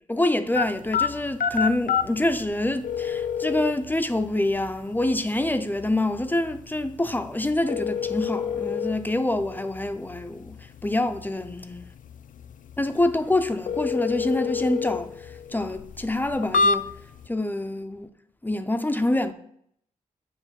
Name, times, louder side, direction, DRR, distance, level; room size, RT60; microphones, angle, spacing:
voice 1, 0.1-11.9 12.8-15.1 15.5-16.9 17.3-18.1 18.4-19.3, left 1 dB, 15° left, 0.5 m, -26 dB
sound 1, 0.5-17.3, left 6 dB, 70° left, 0.4 m, -30 dB
7.4 x 3.0 x 5.2 m
cardioid pair, 75°, 14 cm